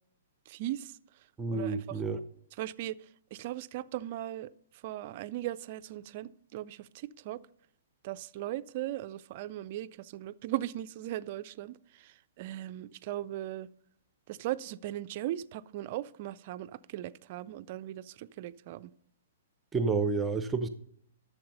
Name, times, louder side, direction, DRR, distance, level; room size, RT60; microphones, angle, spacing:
voice 1, 0.5-1.0 1.5-2.0 2.6-7.4 8.0-13.7 14.3-18.9, right 14 dB, 45° right, 0.4 m, -38 dB
voice 2, 1.4-2.2 19.7-20.7, right 4 dB, 15° right, 0.7 m, -29 dB
11.5 x 7.1 x 5.4 m
hypercardioid pair, 120°, 0 cm